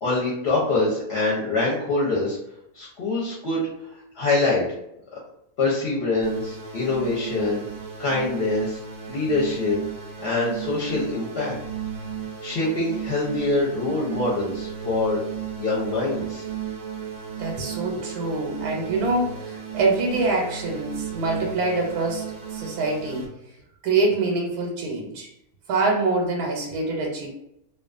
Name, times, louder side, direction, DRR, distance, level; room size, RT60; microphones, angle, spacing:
voice 1, 0.0-2.4 2.7-3.6 4.2-4.6 5.6-7.7 8.0-8.8 9.1-9.8 10.2-11.5 12.4-15.3 15.6-16.4, left 2 dB, 55° left, -5 dB, 0.8 m, -24 dB
sound 1, 6.2-23.3, right 8 dB, 65° right, 0.4 m, -35 dB
voice 2, 17.4-23.3 23.8-25.3 25.7-27.3, right 3 dB, 90° right, 0 dB, 1.1 m, -25 dB
2.4 x 2.3 x 2.4 m, 0.80 s
omnidirectional pair, 1.5 m